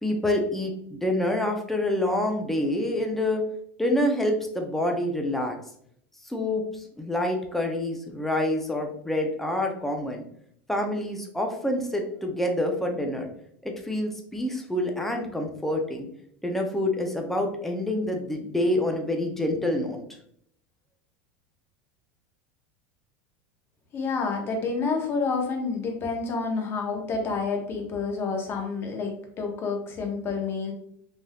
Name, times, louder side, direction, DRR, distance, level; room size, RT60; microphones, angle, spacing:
voice 1, 0.0-3.4 3.8-5.5 6.2-10.2 10.7-13.3 13.6-16.1 16.4-20.0, left 1 dB, 5° left, 2 dB, 0.5 m, -27 dB
voice 2, 23.9-30.7, left 4 dB, 35° left, 2 dB, 0.8 m, -29 dB
3.3 x 2.6 x 2.3 m, 0.68 s
supercardioid pair, 130°, 7 cm